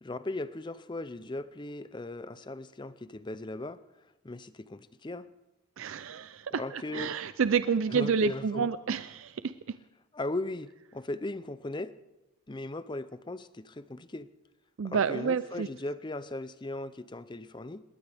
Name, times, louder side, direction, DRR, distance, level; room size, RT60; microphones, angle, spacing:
voice 1, 0.0-3.8 4.2-5.3 6.5-7.2 7.9-8.7 10.1-11.9 12.5-14.3 14.8-17.8, left 2 dB, 20° left, 14 dB, 0.5 m, -38 dB
voice 2, 5.8-9.5 14.8-15.7, right 6 dB, 70° right, 13 dB, 0.4 m, -29 dB
20.5 x 18.0 x 3.5 m, 0.99 s
head